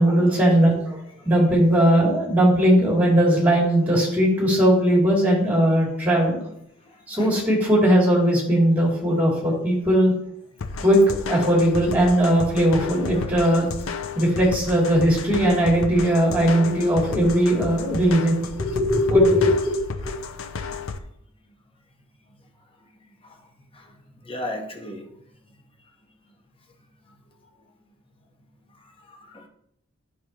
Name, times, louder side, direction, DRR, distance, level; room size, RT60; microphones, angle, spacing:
voice 1, 0.0-6.5 7.1-10.1 10.8-11.0 11.3-13.7 14.1-19.8, equal, 10° right, -3 dB, 2.7 m, -19 dB
voice 2, 6.8-7.3 13.1-13.3 23.2-23.4 23.7-23.9 24.2-25.1 29.1-29.5, left 1 dB, 25° left, 2 dB, 1.0 m, -36 dB
sound 1, 10.6-21.0, left 4 dB, 75° left, 0.6 m, -33 dB
9.3 x 6.2 x 2.9 m, 0.74 s
head